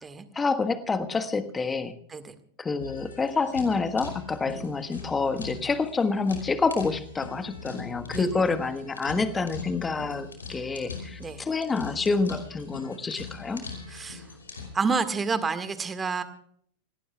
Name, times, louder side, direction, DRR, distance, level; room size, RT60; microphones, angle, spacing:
voice 1, 0.3-1.9 2.6-13.7, left 4 dB, 15° left, 9 dB, 1.3 m, -28 dB
sound 1, 2.8-14.7, left 5 dB, 75° left, 5.0 m, -41 dB
voice 2, 8.1-8.4 11.2-11.4 13.9-14.2 14.7-16.2, right 4 dB, 15° right, 11 dB, 1.7 m, -29 dB
27.5 x 18.0 x 2.3 m, 0.63 s
figure-of-eight pair, 90°, 0 cm